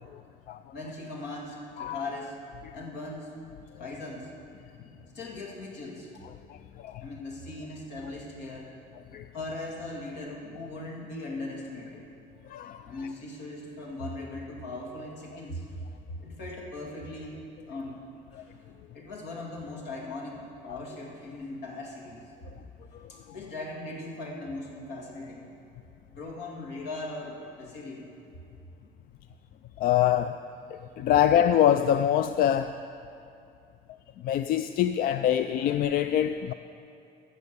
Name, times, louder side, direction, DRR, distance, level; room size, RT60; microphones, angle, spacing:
voice 1, 0.7-2.4 2.7-3.3 3.8-4.3 4.8-6.1 7.0-8.7 9.3-12.0 12.8-15.7 16.1-18.0 18.3-18.5 18.9-22.2 23.3-25.5 26.1-28.1, left 2 dB, 85° left, -1 dB, 2.2 m, -39 dB
voice 2, 6.5-7.0 9.1-9.3 12.5-12.9 20.7-20.8 22.9-23.0 29.8-30.4 30.8-32.8 34.2-36.5, left 10 dB, 60° left, 10 dB, 0.4 m, -25 dB
15.5 x 6.7 x 6.9 m, 2.6 s
cardioid pair, 110°, 17 cm